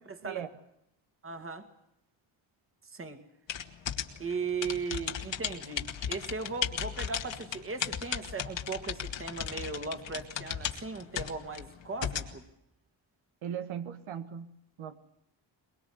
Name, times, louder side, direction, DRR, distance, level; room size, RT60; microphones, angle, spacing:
voice 1, 0.1-0.4 1.2-1.7 2.9-3.2 4.2-12.4, right 4 dB, 25° right, 7 dB, 2.4 m, -37 dB
sound 1, 3.5-12.3, left 8 dB, 65° left, 2.2 m, -36 dB
voice 2, 13.4-15.0, right 9 dB, 80° right, 9 dB, 1.8 m, -39 dB
23.0 x 22.5 x 8.0 m, 0.79 s
wide cardioid pair, 165°, 47 cm